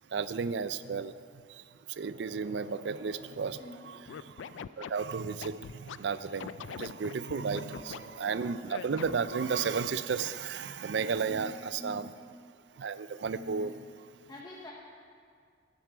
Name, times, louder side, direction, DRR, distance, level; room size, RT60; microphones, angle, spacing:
voice 1, 0.1-1.1 1.5-12.1 12.8-13.7, right 5 dB, 65° right, 14 dB, 0.4 m, -34 dB
sound 1, 1.8-4.6 7.2-9.9, right 2 dB, 90° right, 2.7 m, -56 dB
voice 2, 3.6-3.9 7.4-8.0 11.3-12.1 13.4-13.7 14.3-14.7, left 1 dB, 20° left, -3 dB, 0.9 m, -46 dB
Scratching (performance technique), 4.1-6.0 6.4-8.0 8.7-9.3, left 7 dB, 80° left, 0.3 m, -42 dB
12.0 x 10.5 x 4.7 m, 2.2 s
head